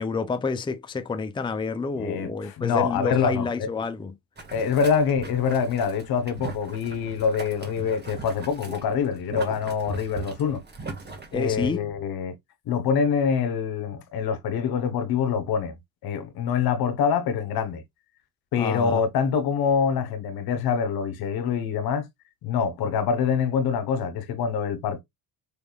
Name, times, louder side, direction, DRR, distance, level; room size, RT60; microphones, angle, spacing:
voice 1, 0.0-4.1 11.3-11.8 18.6-19.0, left 4 dB, 10° left, 0.6 m, -29 dB
voice 2, 1.9-3.7 4.5-10.6 11.3-12.3 12.7-17.8 18.5-22.1 22.4-25.0, left 6 dB, 65° left, 1.1 m, -25 dB
Boiling, 4.4-11.7, right 3 dB, 25° right, 1.7 m, -39 dB
4.7 x 3.5 x 2.3 m
supercardioid pair, 85°, 39 cm